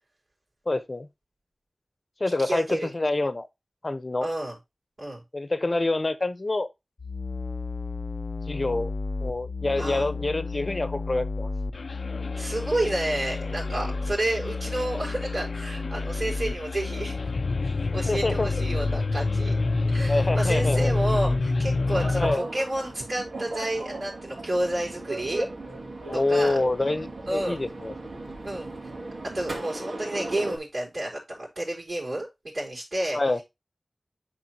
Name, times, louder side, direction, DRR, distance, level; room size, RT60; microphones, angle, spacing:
voice 1, 0.7-1.1 2.2-3.5 3.8-4.3 5.3-6.7 8.5-8.9 9.2-11.5 18.1-18.5 20.1-20.9 22.1-22.4 26.1-27.9 33.1-33.4, left 2 dB, 45° left, 0.9 m, -26 dB
voice 2, 2.4-2.9 4.2-4.6 5.0-5.2 9.7-10.1 12.4-17.1 17.9-19.5 19.9-25.5 26.1-26.6 27.3-27.6 28.4-28.7 29.3-33.2, right 1 dB, 55° right, 4.4 m, -30 dB
sound 1, 7.0-22.4, left 3 dB, 80° left, 0.6 m, -28 dB
sound 2, 21.9-30.6, right 2 dB, 75° right, 2.8 m, -37 dB
10.5 x 4.3 x 2.9 m
wide cardioid pair, 75°, 0 cm